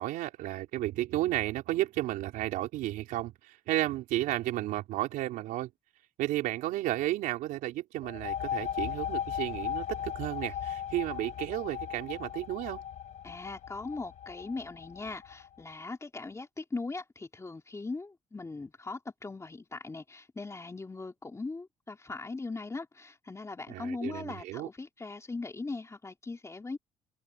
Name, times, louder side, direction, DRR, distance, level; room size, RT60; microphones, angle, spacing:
voice 1, 0.0-5.7 6.2-12.8 23.7-24.7, right 15 dB, 80° right, 4.0 m, -33 dB
sound 1, 8.0-15.5, left 9 dB, 60° left, 3.6 m, -37 dB
voice 2, 13.2-26.8, left 3 dB, 20° left, 3.2 m, -39 dB
supercardioid pair, 85°, 14 cm